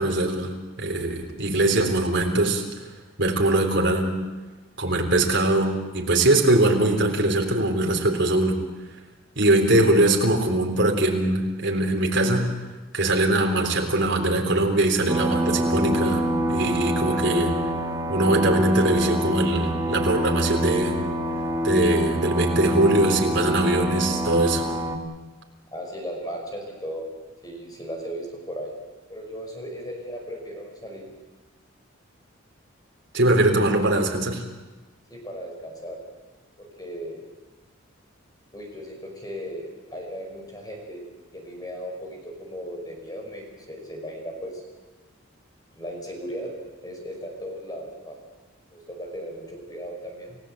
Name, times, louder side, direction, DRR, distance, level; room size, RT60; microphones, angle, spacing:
voice 1, 0.0-2.6 3.2-4.2 4.8-8.6 9.4-12.5 12.9-17.5 18.1-21.0 21.6-24.6 33.1-34.4, right 1 dB, 55° right, 1 dB, 3.7 m, -21 dB
sound 1, 15.1-25.0, equal, 15° right, 1.7 m, -26 dB
voice 2, 25.7-27.1 27.4-28.7 29.1-31.1 35.1-36.0 36.6-37.2 38.5-41.0 41.3-44.6 45.7-46.5 46.8-48.2 48.7-50.4, equal, 20° left, 1 dB, 5.6 m, -36 dB
29.5 x 15.5 x 7.9 m, 1.2 s
head